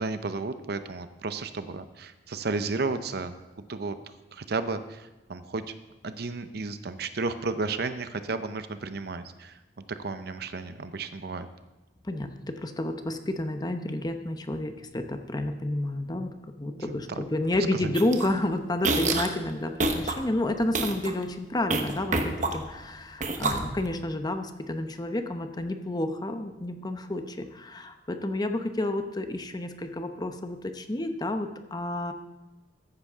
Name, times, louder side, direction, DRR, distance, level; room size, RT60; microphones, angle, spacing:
voice 1, 0.0-3.3 3.7-3.9 4.3-5.6 6.0-9.6 9.9-11.5 16.9-17.2, right 3 dB, 65° right, 11 dB, 0.7 m, -33 dB
voice 2, 12.1-32.1, left 1 dB, 25° left, 7 dB, 0.8 m, -30 dB
sound 1, 17.9-18.3 18.8-19.3 19.8-20.1 20.6-21.1 21.7-22.8 23.2-23.9, right 3 dB, 45° right, 1.1 m, -27 dB
14.5 x 9.9 x 3.6 m, 1.1 s
head